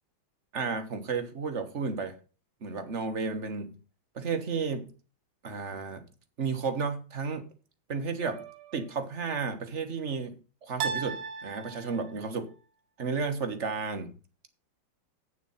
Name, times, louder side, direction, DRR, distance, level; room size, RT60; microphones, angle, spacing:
voice 1, 0.5-2.2 2.6-3.7 4.1-4.9 5.4-6.1 6.4-7.4 7.9-8.4 8.7-10.4 10.6-12.5 13.0-14.2, right 5 dB, 40° right, 7 dB, 1.4 m, -32 dB
sound 1, 8.2-8.9 10.8-12.3, right 6 dB, 85° right, 1.6 m, -36 dB
8.8 x 7.1 x 5.6 m, 0.35 s
omnidirectional pair, 2.2 m